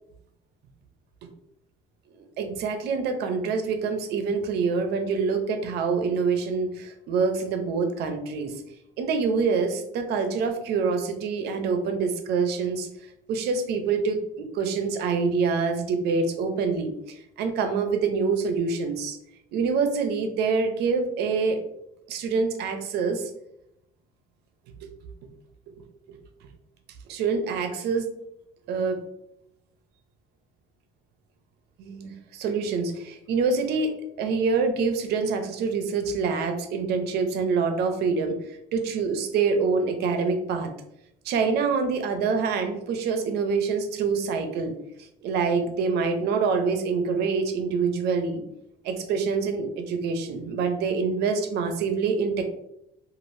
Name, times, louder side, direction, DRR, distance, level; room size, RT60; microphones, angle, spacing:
voice 1, 2.4-8.5 9.0-12.9 13.3-16.9 17.4-19.2 19.5-21.6 22.1-23.3 24.8-24.9 26.1-26.2 27.1-28.1 28.7-29.0 31.8-33.9 34.2-38.4 38.7-40.7 41.2-44.7 45.2-48.4 48.8-52.4, right 5 dB, 75° right, 6 dB, 0.5 m, -26 dB
3.2 x 2.4 x 2.6 m, 0.80 s
cardioid pair, 110°, 17 cm